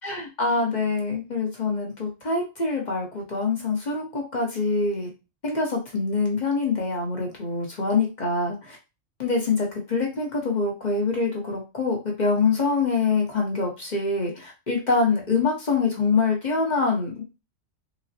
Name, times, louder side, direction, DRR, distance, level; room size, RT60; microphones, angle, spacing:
voice 1, 0.0-5.1 5.4-8.8 9.2-17.3, left 4 dB, 40° left, -1 dB, 0.9 m, -25 dB
4.0 x 2.0 x 2.7 m, 0.28 s
omnidirectional pair, 1.3 m